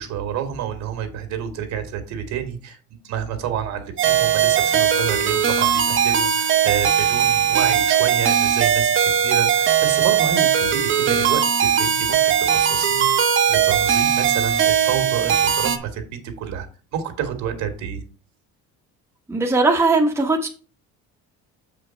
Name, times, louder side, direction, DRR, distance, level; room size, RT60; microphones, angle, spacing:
voice 1, 0.0-2.8 3.0-16.7 16.9-18.0, right 8 dB, 65° right, 6 dB, 2.1 m, -29 dB
sound 1, 4.0-15.8, right 8 dB, 40° right, 1.1 m, -19 dB
voice 2, 19.3-20.5, right 3 dB, 10° right, 0 dB, 1.3 m, -19 dB
7.6 x 5.1 x 4.5 m, 0.36 s
cardioid pair, 150°, 30 cm